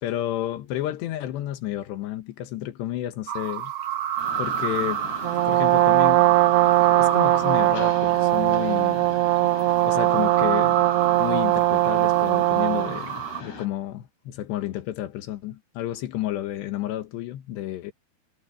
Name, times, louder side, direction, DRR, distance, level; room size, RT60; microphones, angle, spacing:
voice 1, 0.0-3.7 4.4-5.1 5.5-6.3 6.9-9.1 9.9-10.8 11.2-13.2 13.4-17.9, left 13 dB, 90° left, 3.5 m, -31 dB
sound 1, 3.3-13.4, right 8 dB, 55° right, 2.2 m, -30 dB
Mechanisms, 4.2-13.7, left 3 dB, 75° left, 9.7 m, -40 dB
Brass instrument, 5.2-13.0, right 18 dB, 80° right, 2.7 m, -20 dB
omnidirectional pair, 4.8 m